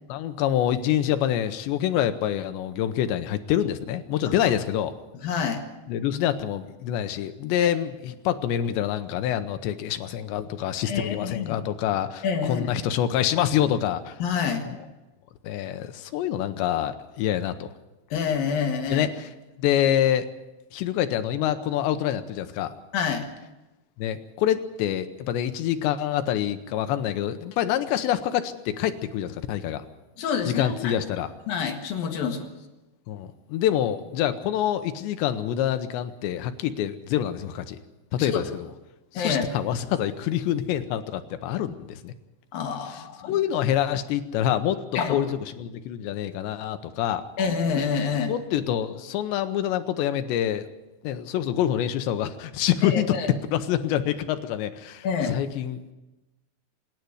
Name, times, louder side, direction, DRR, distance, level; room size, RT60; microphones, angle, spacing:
voice 1, 0.1-4.9 5.9-14.2 14.7-14.8 15.4-17.7 18.9-19.3 19.6-20.3 20.7-22.7 24.0-29.8 30.5-31.3 33.1-37.8 38.1-38.5 39.1-42.1 42.9-44.8 45.1-45.3 45.6-47.2 48.3-50.7 51.0-53.2 53.5-55.9, left 11 dB, 75° left, 10 dB, 2.8 m, -26 dB
voice 2, 5.2-5.6 7.6-7.7 10.8-11.6 12.2-12.7 14.2-14.7 18.1-19.1 22.9-23.3 30.2-31.0 31.5-32.5 38.2-38.4 39.1-39.4 42.5-43.4 44.9-45.3 47.4-48.3 52.8-53.3 55.0-55.4, left 6 dB, 60° left, 4 dB, 2.9 m, -27 dB
25.5 x 10.5 x 9.6 m, 1.0 s
omnidirectional pair, 5.8 m